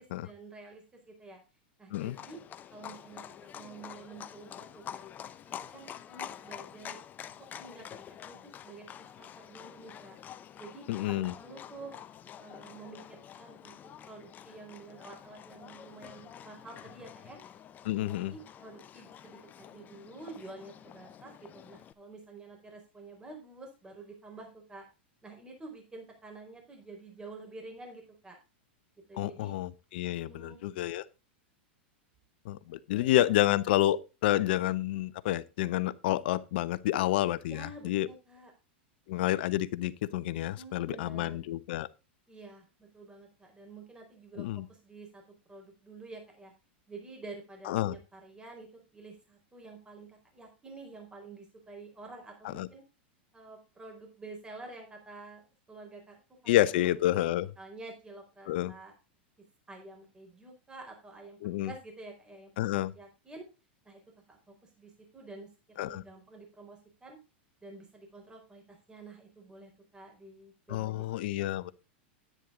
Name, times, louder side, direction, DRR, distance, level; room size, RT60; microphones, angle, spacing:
voice 1, 0.2-1.4 1.8-2.4 2.7-5.0 5.4-7.0 7.4-10.1 10.6-12.0 12.4-13.7 14.0-17.4 18.3-24.9 25.2-28.4 29.1-29.6 30.3-30.6 32.9-33.1 37.5-38.5 40.6-41.4 42.3-45.2 45.5-46.5 46.9-52.8 53.3-55.4 55.7-56.9 57.6-58.9 59.7-62.5 62.9-63.4 63.8-64.0 64.3-67.2 67.6-71.0 71.4-71.6, right 3 dB, 15° right, 4.4 m, -49 dB
Livestock farm animals working animals, 1.9-21.9, left 9 dB, 30° left, 0.8 m, -48 dB
voice 2, 10.9-11.3 17.8-18.3 29.2-31.1 32.4-38.1 39.1-41.9 44.4-44.7 47.7-48.0 52.4-52.7 56.5-57.5 58.5-58.7 61.4-61.7 62.6-62.9 65.8-66.0 70.7-71.7, left 14 dB, 65° left, 0.8 m, -29 dB
10.0 x 9.4 x 3.8 m
hypercardioid pair, 110°, 6 cm